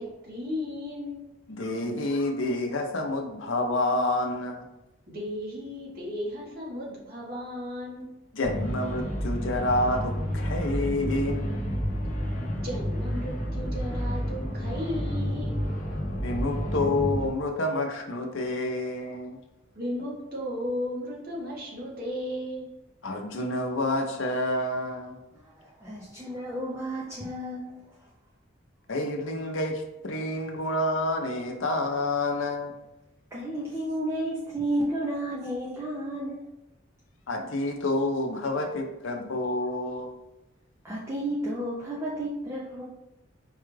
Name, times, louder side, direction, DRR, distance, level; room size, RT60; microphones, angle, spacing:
voice 1, 0.0-1.3 5.1-8.1 12.6-15.6 19.7-22.7, left 1 dB, 50° right, -5 dB, 1.2 m, -35 dB
voice 2, 1.5-4.7 8.3-11.5 16.2-19.4 23.0-25.2 28.9-32.7 37.3-40.1, left 2 dB, 80° left, 3 dB, 0.6 m, -28 dB
sound 1, 8.4-17.3, equal, 40° left, 0.6 m, -30 dB
voice 3, 25.3-28.1 33.3-36.5 40.8-42.8, right 1 dB, 15° right, -6 dB, 0.5 m, -32 dB
4.6 x 2.3 x 3.1 m, 0.94 s
head